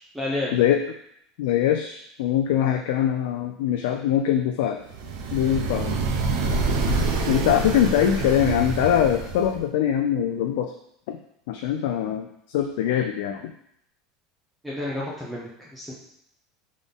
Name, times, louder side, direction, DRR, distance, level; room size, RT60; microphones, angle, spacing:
voice 1, 0.1-0.7 14.6-15.9, left 1 dB, 5° right, -6 dB, 0.7 m, -30 dB
voice 2, 1.4-4.8 5.3-5.9 7.3-10.7 11.1-11.2 11.5-13.5, left 10 dB, 80° left, 4 dB, 0.4 m, -23 dB
sound 1, 4.9-9.6, right 3 dB, 70° right, 0.7 m, -26 dB
3.9 x 3.7 x 3.6 m, 0.72 s
cardioid pair, 160°, 0 cm